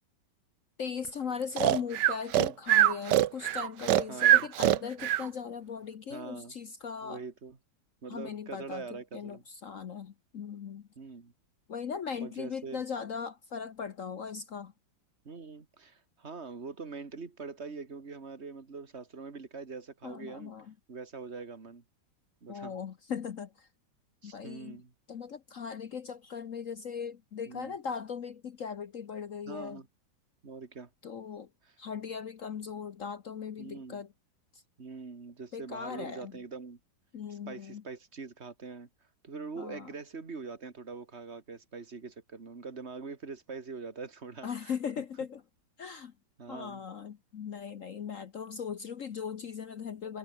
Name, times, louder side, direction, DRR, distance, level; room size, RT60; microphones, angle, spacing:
voice 1, 0.8-7.2 8.1-10.9 11.7-14.7 20.0-20.7 22.5-23.7 24.2-24.8 25.1-29.8 31.0-31.5 31.8-34.1 34.5-34.6 35.5-36.3 37.1-37.8 39.6-39.9 44.4-45.4 45.8-46.1 46.5-50.2, left 6 dB, 50° left, 1.1 m, -39 dB
Breathing, 1.6-5.3, right 12 dB, 65° right, 1.4 m, -23 dB
voice 2, 4.1-4.5 6.1-6.5 7.0-7.6 8.0-9.4 11.0-11.3 12.2-12.8 15.2-20.5 20.9-21.8 22.4-22.8 24.2-24.9 27.5-27.7 29.5-29.9 30.4-30.9 33.6-34.0 34.8-36.8 37.3-38.9 39.2-44.7 46.4-46.8, right 4 dB, 35° right, 2.4 m, -43 dB
omnidirectional pair, 2.1 m